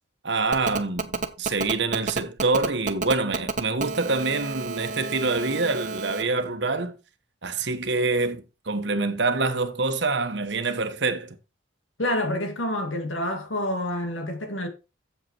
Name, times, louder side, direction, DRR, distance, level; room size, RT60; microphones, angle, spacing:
voice 1, 0.2-6.9 7.4-11.4, right 3 dB, 65° right, 1.2 m, -26 dB
Telephone, 0.5-6.2, right 4 dB, 40° right, 0.9 m, -30 dB
voice 2, 12.0-14.7, left 1 dB, 85° left, 2.3 m, -28 dB
7.9 x 7.6 x 4.6 m
head